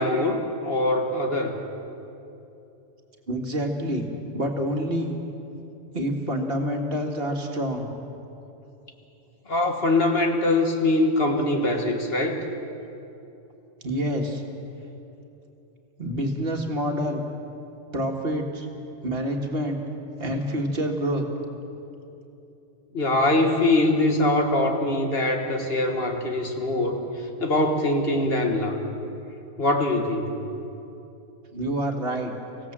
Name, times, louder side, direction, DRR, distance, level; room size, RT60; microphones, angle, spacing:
voice 1, 0.0-1.6 9.5-12.4 22.9-27.0 27.4-28.8 29.6-30.3, left 2 dB, 60° left, 3 dB, 1.9 m, -23 dB
voice 2, 3.3-4.0 4.3-5.2 5.9-7.9 13.8-14.4 16.0-17.2 17.9-18.7 19.0-19.8 20.2-21.2 31.5-32.3, equal, 55° right, 2 dB, 2.2 m, -27 dB
25.5 x 16.5 x 7.4 m, 2.9 s
omnidirectional pair, 1.2 m